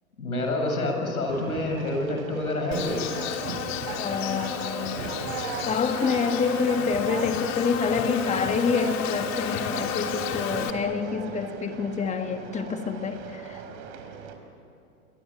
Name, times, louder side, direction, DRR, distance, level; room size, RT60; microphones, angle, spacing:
voice 1, 0.2-3.0, left 2 dB, 85° left, 3 dB, 7.7 m, -27 dB
Conversation, 1.3-14.3, right 6 dB, 55° right, 5.0 m, -38 dB
Insect, 2.7-10.7, left 7 dB, 40° left, 2.9 m, -32 dB
voice 2, 3.9-5.2 5.6-13.6, left 5 dB, 15° left, 6 dB, 1.7 m, -27 dB
28.5 x 23.0 x 9.2 m, 2.5 s
hypercardioid pair, 105°, 42 cm